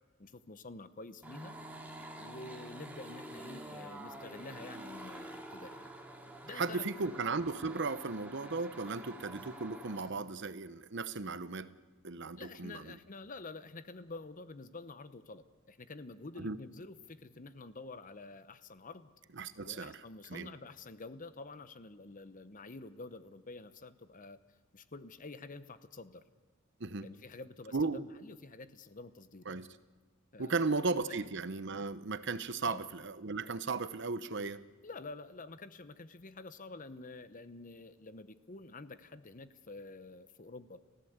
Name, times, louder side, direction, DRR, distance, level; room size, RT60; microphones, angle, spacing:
voice 1, 0.2-1.5 2.2-5.9 6.4-6.8 12.4-19.1 19.6-24.4 24.7-26.2 27.0-29.6 30.3-30.8 31.1-31.3 32.6-32.8 34.8-40.8, left 3 dB, 40° left, 13 dB, 0.9 m, -48 dB
sound 1, 1.2-10.1, right 1 dB, 10° right, 2.3 m, -48 dB
voice 2, 6.5-11.7 12.0-12.9 16.4-16.6 19.4-19.9 20.3-20.5 26.8-27.1 27.7-28.0 29.5-29.7 30.4-34.6, right 3 dB, 60° right, 14 dB, 0.9 m, -36 dB
29.5 x 15.5 x 8.1 m, 1.3 s
head